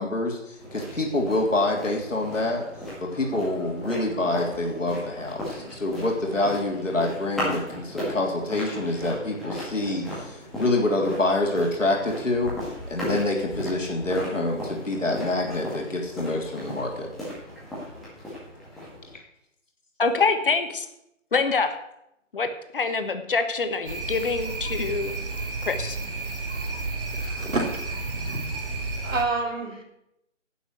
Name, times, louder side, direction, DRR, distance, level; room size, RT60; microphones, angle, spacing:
voice 1, 0.0-2.6 3.0-12.5 12.9-17.1, left 2 dB, 80° left, 0 dB, 3.4 m, -26 dB
sound 1, 0.6-19.1, equal, ahead, 2.0 m, -36 dB
voice 2, 20.0-20.9 21.3-21.7 22.3-22.5 22.7-25.1 25.6-26.0, left 4 dB, 45° left, 8 dB, 1.5 m, -25 dB
sound 2, 23.9-29.2, right 3 dB, 45° right, 2.1 m, -32 dB
voice 3, 27.2-28.4 29.0-29.8, right 3 dB, 80° right, 1 dB, 3.4 m, -29 dB
11.0 x 7.2 x 8.0 m, 0.81 s
figure-of-eight pair, 155°, 38 cm